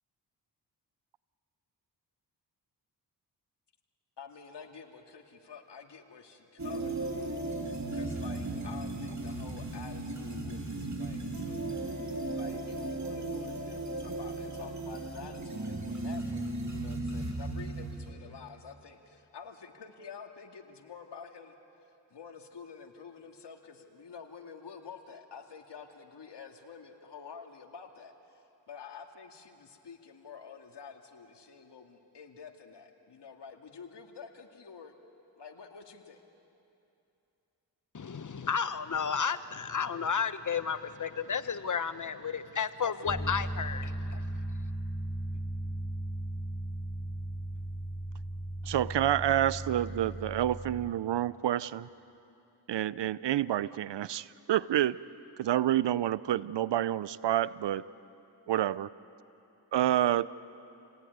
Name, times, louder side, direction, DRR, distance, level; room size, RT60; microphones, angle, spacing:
voice 1, 4.2-7.3 7.9-11.7 12.3-21.6 21.8-28.4 28.7-34.9 35.4-36.2 42.8-43.4 45.3-45.4, left 6 dB, 70° left, 4 dB, 2.3 m, -49 dB
sound 1, 6.6-18.1, right 2 dB, 40° right, 3.2 m, -36 dB
voice 2, 37.9-44.2, left 6 dB, 45° left, 12 dB, 1.2 m, -32 dB
sound 2, 43.1-50.9, right 1 dB, 5° left, 1.0 m, -37 dB
voice 3, 48.6-51.9 52.7-55.0 55.4-57.8 58.5-58.9 59.7-60.3, right 12 dB, 70° right, 18 dB, 0.7 m, -28 dB
28.5 x 18.5 x 9.5 m, 2.8 s
cardioid pair, 55°, 43 cm